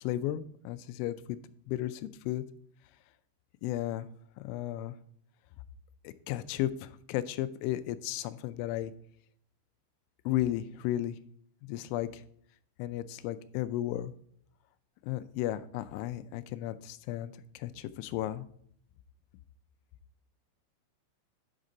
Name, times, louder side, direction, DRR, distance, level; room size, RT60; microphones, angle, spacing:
voice 1, 0.0-1.4 1.7-2.4 3.6-4.1 4.4-4.9 6.0-8.9 10.3-11.2 11.6-12.2 12.8-14.1 15.0-18.5, left 13 dB, 90° left, 13 dB, 3.0 m, -34 dB
9.4 x 6.5 x 3.7 m, 0.66 s
omnidirectional pair, 5.4 m